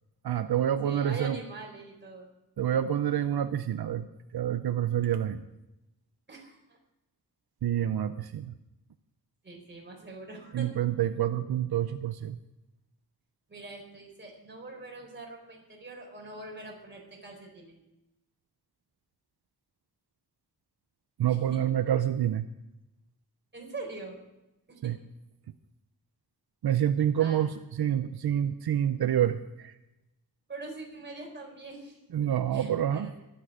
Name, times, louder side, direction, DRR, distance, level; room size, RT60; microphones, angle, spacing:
voice 1, 0.2-1.4 2.6-4.1 4.3-5.4 7.6-8.5 10.5-12.4 21.2-22.5 24.8-25.0 26.6-29.7 32.1-33.1, right 10 dB, 85° right, 10 dB, 0.7 m, -27 dB
voice 2, 0.8-2.3 6.3-6.8 9.4-10.7 13.5-17.7 21.3-21.6 23.5-24.2 24.7-24.9 27.2-27.5 30.5-33.1, right 2 dB, 30° right, 0 dB, 4.2 m, -43 dB
23.5 x 9.0 x 5.0 m, 0.94 s
wide cardioid pair, 165°, 37 cm